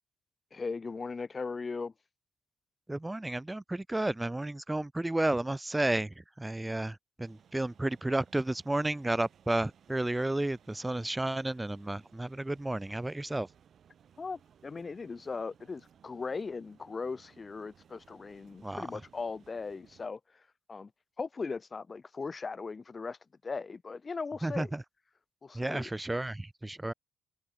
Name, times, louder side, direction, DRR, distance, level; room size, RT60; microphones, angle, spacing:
voice 1, 0.5-1.9 14.2-20.4 20.7-20.9 21.2-23.2 23.4-24.7 25.4-25.9, left 4 dB, 30° left, 1.8 m, -38 dB
voice 2, 2.9-13.5 18.6-18.9 24.4-24.8 25.5-26.9, right 1 dB, 10° right, 0.4 m, -32 dB
sound 1, 7.2-20.1, right 8 dB, 55° right, 4.3 m, -62 dB
open air
cardioid pair, 90°, 0 cm